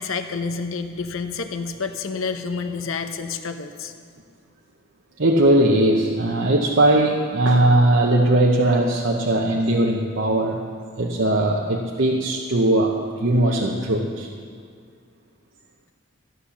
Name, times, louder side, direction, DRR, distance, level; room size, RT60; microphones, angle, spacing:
voice 1, 0.0-3.9, left 4 dB, 80° left, 7 dB, 0.8 m, -29 dB
voice 2, 5.2-10.6 11.0-14.3, right 1 dB, 65° right, -1 dB, 0.9 m, -19 dB
14.0 x 10.0 x 7.1 m, 2.1 s
head